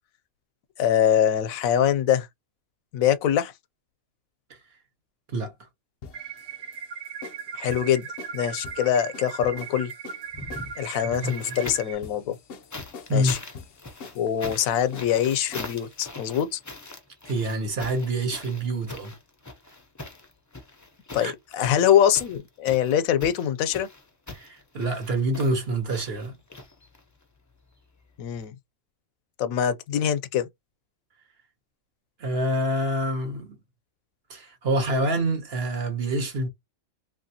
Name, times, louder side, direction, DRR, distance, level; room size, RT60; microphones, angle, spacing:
voice 1, 0.8-2.3 2.9-3.5 7.5-8.1 8.3-9.9 10.8-12.4 13.1-13.4 14.1-16.6 21.1-23.9 28.2-28.5 29.4-30.5, left 9 dB, 80° left, 1.0 m, -23 dB
sound 1, 6.0-15.9, left 5 dB, 60° left, 0.7 m, -45 dB
sound 2, 6.1-11.9, right 6 dB, 80° right, 1.0 m, -38 dB
sound 3, 10.3-12.0 12.7-27.2 28.4-28.5, left 2 dB, 25° left, 0.4 m, -42 dB
voice 2, 11.0-11.6 13.1-13.4 17.2-19.1 21.2-21.3 24.3-26.4 32.2-33.6 34.3-36.5, right 1 dB, 50° right, 1.0 m, -27 dB
3.1 x 2.6 x 2.7 m
omnidirectional pair, 1.4 m